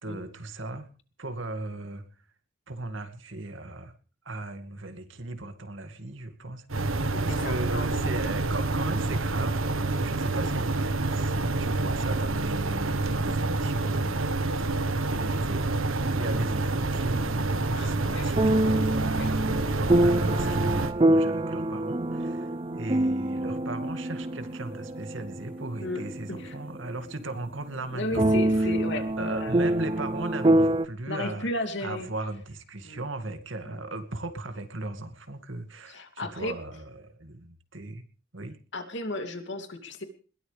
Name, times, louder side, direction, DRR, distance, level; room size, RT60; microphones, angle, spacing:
voice 1, 0.0-0.9 1.2-2.0 2.7-3.9 4.2-14.2 15.1-28.7 29.2-31.5 31.8-38.0 38.3-38.6, right 2 dB, 65° right, 7 dB, 2.3 m, -37 dB
sound 1, 6.7-20.9, right 2 dB, 90° right, 1.5 m, -27 dB
voice 2, 7.1-8.3 16.2-16.4 17.7-18.4 19.1-19.3 20.4-20.6 25.8-26.0 26.3-26.5 27.9-29.5 31.1-32.1 32.8-33.0 33.7-33.8 35.9-36.5 38.7-40.0, left 2 dB, 60° left, 6 dB, 2.9 m, -34 dB
sound 2, 16.0-17.4 18.4-27.1 27.5-27.6 28.1-30.9, right 1 dB, 25° right, 0.7 m, -26 dB
21.5 x 17.0 x 3.5 m, 0.39 s
head